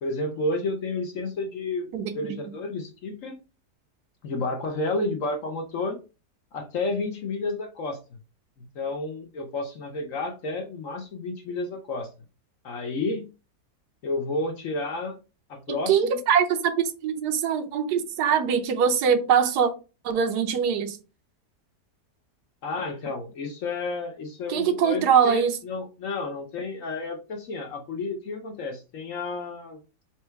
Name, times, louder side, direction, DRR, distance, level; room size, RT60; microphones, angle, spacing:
voice 1, 0.0-1.9 2.1-3.4 4.2-6.0 6.5-8.0 8.7-12.1 12.6-13.2 14.0-15.2 15.5-16.2 22.6-29.8, left 2 dB, 60° left, 0.9 m, -31 dB
voice 2, 15.7-16.7 17.0-19.7 20.0-21.0 24.5-25.6, right 7 dB, 75° right, 1.2 m, -22 dB
4.4 x 2.3 x 4.5 m
omnidirectional pair, 1.8 m